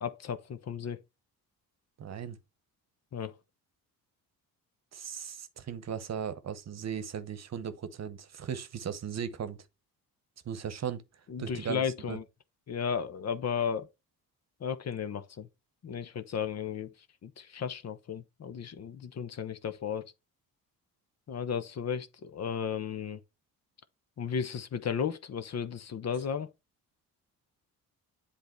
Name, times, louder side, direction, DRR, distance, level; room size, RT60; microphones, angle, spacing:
voice 1, 0.0-1.0 3.1-3.3 11.3-12.2 12.7-13.9 14.6-15.5 15.8-16.9 17.2-20.0 21.3-23.2 24.2-26.5, left 7 dB, 45° left, 0.8 m, -34 dB
voice 2, 2.0-2.4 4.9-9.6 10.4-11.0 11.4-12.2, right 8 dB, 45° right, 1.0 m, -37 dB
7.8 x 3.4 x 4.5 m
cardioid pair, 100°, 36 cm